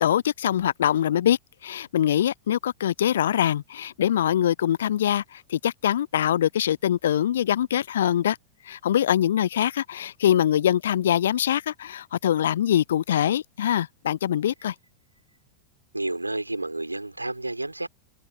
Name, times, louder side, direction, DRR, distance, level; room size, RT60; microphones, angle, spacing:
voice 1, 0.0-8.4 8.7-14.7, left 10 dB, 60° left, 0.6 m, -23 dB
voice 2, 15.9-17.9, right 2 dB, 85° right, 3.3 m, -30 dB
figure-of-eight pair, 90°, 0 cm